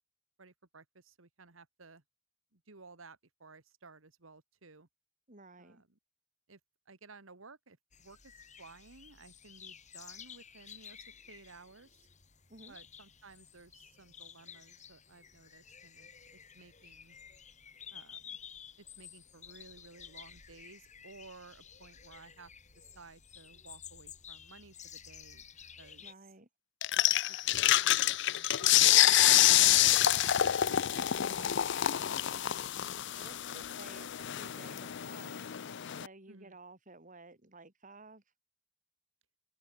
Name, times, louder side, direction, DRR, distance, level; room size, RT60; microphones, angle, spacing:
voice 1, 0.4-2.0 2.5-4.9 5.6-5.9 6.5-6.6 6.9-8.3 8.6-11.9 12.7-17.2 17.9-18.4 18.8-25.5 25.8-26.0 26.9-29.4 30.1-31.7 36.3-36.6, right 3 dB, 90° right, 1.9 m, -56 dB
voice 2, 5.3-5.8 12.5-12.8 26.0-26.5 32.0-32.7 33.1-35.5 35.9-38.2, right 3 dB, 40° right, 4.1 m, -54 dB
sound 1, 7.9-26.1, left 8 dB, 35° left, 3.0 m, -53 dB
sound 2, 26.8-36.1, left 13 dB, 60° left, 0.5 m, -27 dB
open air
head